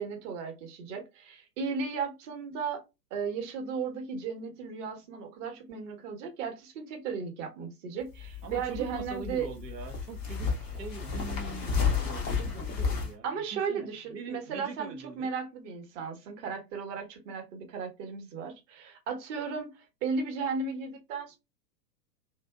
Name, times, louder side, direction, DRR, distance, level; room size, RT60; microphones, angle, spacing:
voice 1, 0.0-2.8 3.1-9.5 13.2-21.4, right 5 dB, 45° right, 1.0 m, -35 dB
sound 1, 8.0-13.1, left 5 dB, 20° left, 0.4 m, -32 dB
voice 2, 8.4-15.3, right 5 dB, 80° right, 0.6 m, -43 dB
2.7 x 2.3 x 2.2 m
figure-of-eight pair, 100°, 49 cm